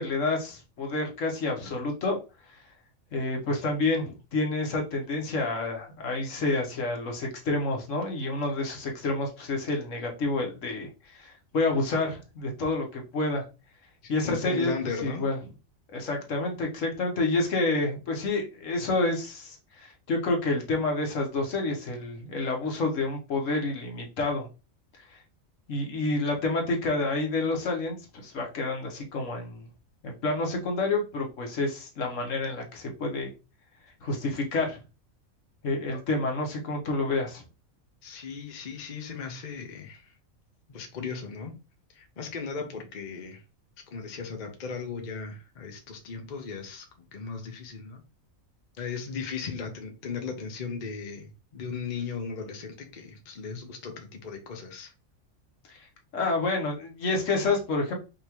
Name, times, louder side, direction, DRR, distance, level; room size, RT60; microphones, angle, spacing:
voice 1, 0.0-2.2 3.1-13.4 14.1-14.7 15.0-15.4 15.9-24.5 25.7-29.7 30.0-33.3 34.0-34.8 35.6-37.4 56.1-57.9, left 2 dB, 65° left, 1 dB, 1.4 m, -29 dB
voice 2, 14.0-15.3 35.9-36.0 38.0-40.1 40.7-41.5 41.9-43.4 43.9-46.9 47.1-48.0 48.8-54.9, left 5 dB, 40° left, 3 dB, 0.8 m, -37 dB
5.1 x 2.9 x 3.0 m, 0.30 s
omnidirectional pair, 1.4 m